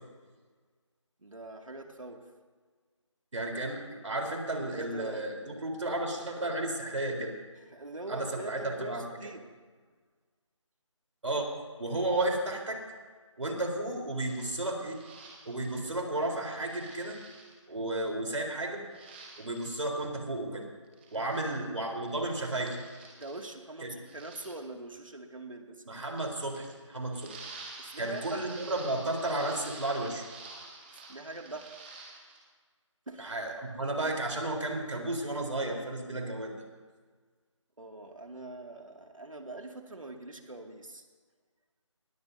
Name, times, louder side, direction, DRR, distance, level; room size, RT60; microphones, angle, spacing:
voice 1, 1.2-2.2 4.7-5.2 7.7-9.5 21.1-21.4 23.1-25.8 27.8-28.5 30.9-31.8 33.1-33.3 37.8-41.0, right 2 dB, 90° right, 3 dB, 2.3 m, -43 dB
voice 2, 3.3-7.3 8.1-9.3 11.2-11.5 11.8-12.8 13.4-15.0 15.5-17.2 17.7-18.8 19.4-20.7 21.1-22.7 23.8-23.9 25.9-27.4 28.0-30.2 33.2-36.5, right 1 dB, 75° right, 1 dB, 3.9 m, -33 dB
sound 1, 14.2-15.8 16.4-17.5 18.9-19.7 20.9-21.5 21.8-23.6 24.0-24.5 26.0-26.7 27.1-32.4, right 3 dB, 20° right, 2.0 m, -49 dB
20.0 x 17.5 x 2.7 m, 1.5 s
figure-of-eight pair, 165°, 16 cm